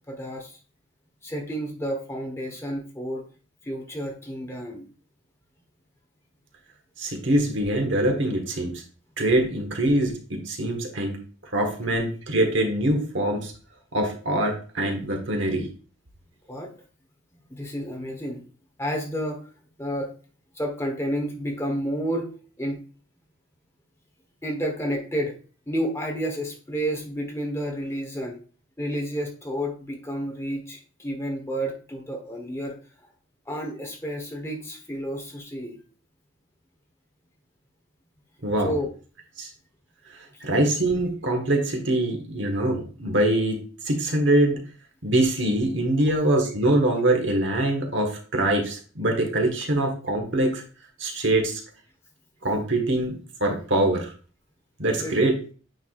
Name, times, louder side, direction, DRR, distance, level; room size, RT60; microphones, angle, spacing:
voice 1, 0.1-0.6 1.2-3.2 3.6-4.9 16.5-16.7 17.5-18.4 18.8-19.5 19.8-20.1 20.5-22.3 22.6-22.8 24.4-25.3 25.7-28.4 28.8-32.8 33.5-35.8 38.6-38.9 40.3-40.4 46.0-46.1 54.9-55.3, equal, 15° left, 1 dB, 1.0 m, -30 dB
voice 2, 7.0-8.8 9.2-11.2 11.5-13.5 13.9-15.7 38.4-38.7 39.4-39.5 40.4-44.6 45.0-50.6 51.0-51.6 52.4-54.1 54.8-55.3, right 1 dB, 60° right, 3 dB, 1.4 m, -24 dB
9.0 x 4.8 x 2.4 m, 0.38 s
head